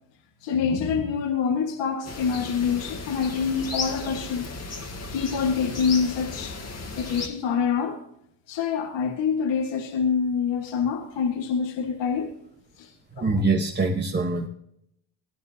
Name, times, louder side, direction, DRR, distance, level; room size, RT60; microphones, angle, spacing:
voice 1, 0.4-4.4 5.1-6.6 7.0-8.0 8.5-12.3 12.8-12.9 13.2-13.3, left 6 dB, 70° left, 1.6 m, -26 dB
sound 1, 2.0-7.3, left 3 dB, 35° left, 2.0 m, -35 dB
voice 2, 13.2-14.5, right 3 dB, 25° right, 1.1 m, -24 dB
17.5 x 10.5 x 2.8 m
cardioid pair, 120°, 45 cm